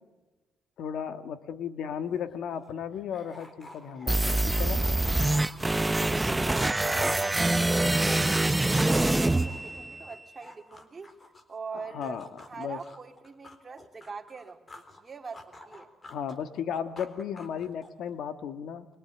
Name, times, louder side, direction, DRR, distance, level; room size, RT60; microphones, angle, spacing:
voice 1, 0.8-4.8 11.7-12.3 12.6-12.8 16.1-18.9, left 8 dB, 75° left, 1.7 m, -35 dB
sound 1, 2.0-2.1 2.3-7.8 8.1-11.6 12.0-15.0 15.3-18.1, left 2 dB, 30° left, 4.1 m, -51 dB
sound 2, 4.1-10.1, right 2 dB, 15° right, 0.8 m, -25 dB
voice 2, 5.8-11.1 11.5-12.2 12.5-15.9, right 5 dB, 30° right, 2.8 m, -43 dB
24.5 x 24.5 x 9.1 m
cardioid pair, 90°, 0 cm